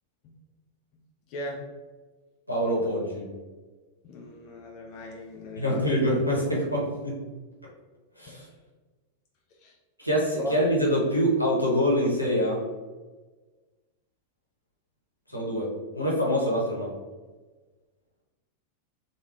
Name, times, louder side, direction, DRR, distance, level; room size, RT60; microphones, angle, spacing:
voice 1, 1.3-1.6 4.0-5.9 8.3-8.4 9.6-9.7 10.4-10.5, equal, 40° left, 0 dB, 0.5 m, -38 dB
voice 2, 2.5-3.3 5.6-7.2 8.2-8.5 10.0-12.6 15.3-16.9, equal, 90° left, -4 dB, 0.9 m, -25 dB
3.3 x 2.2 x 3.3 m, 1.3 s
figure-of-eight pair, 90°, 0 cm